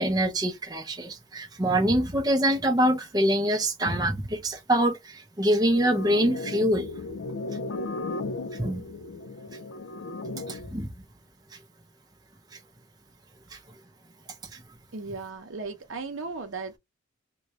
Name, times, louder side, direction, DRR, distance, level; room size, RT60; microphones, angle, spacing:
voice 1, 0.0-6.9 8.6-8.8 10.5-10.9, right 1 dB, 20° right, 0.6 m, -25 dB
sound 1, 5.7-10.7, left 2 dB, 75° left, 0.5 m, -35 dB
voice 2, 14.9-16.8, right 4 dB, 75° right, 0.8 m, -36 dB
3.8 x 2.3 x 2.9 m
head